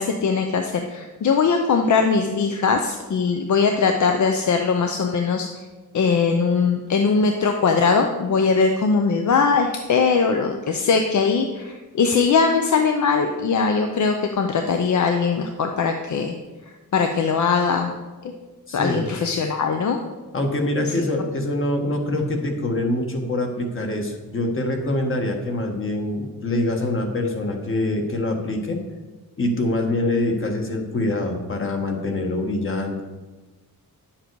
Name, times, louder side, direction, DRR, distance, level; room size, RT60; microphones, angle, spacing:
voice 1, 0.0-5.5 5.9-16.4 16.9-17.9 18.2-18.3 18.7-20.0 20.9-21.1, left 5 dB, 55° left, 5 dB, 0.7 m, -20 dB
voice 2, 18.7-19.1 20.3-28.8 29.4-33.0, left 1 dB, 35° left, 3 dB, 1.4 m, -24 dB
10.5 x 7.5 x 4.7 m, 1.2 s
wide cardioid pair, 180°, 35 cm